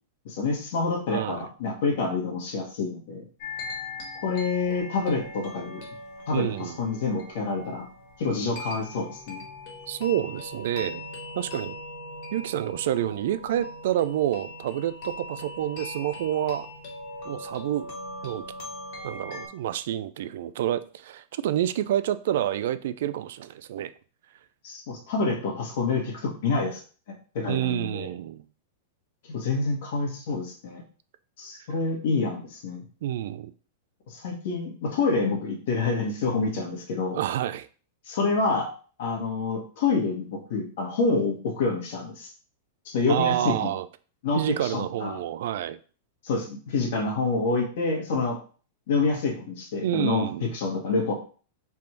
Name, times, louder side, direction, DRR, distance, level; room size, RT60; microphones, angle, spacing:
voice 1, 0.2-3.2 4.2-5.8 6.3-7.9 8.2-9.4 24.6-26.8 27.3-28.1 29.2-30.8 31.4-32.8 34.1-37.2 38.1-38.7 39.0-42.3 42.8-43.7 44.2-45.2 46.2-48.4 48.9-51.1, left 3 dB, 65° left, 0 dB, 1.3 m, -27 dB
voice 2, 1.1-1.5 6.3-6.8 9.9-11.0 11.3-11.7 12.3-16.7 17.2-17.9 18.2-18.4 19.0-23.9 27.4-28.5 33.0-33.5 37.1-37.7 43.1-43.9 44.3-45.8 49.8-50.5, right 12 dB, 70° right, 13 dB, 0.3 m, -28 dB
sound 1, 3.4-19.5, left 2 dB, 50° left, 1.6 m, -40 dB
3.5 x 2.5 x 4.5 m, 0.39 s
supercardioid pair, 150°, 0 cm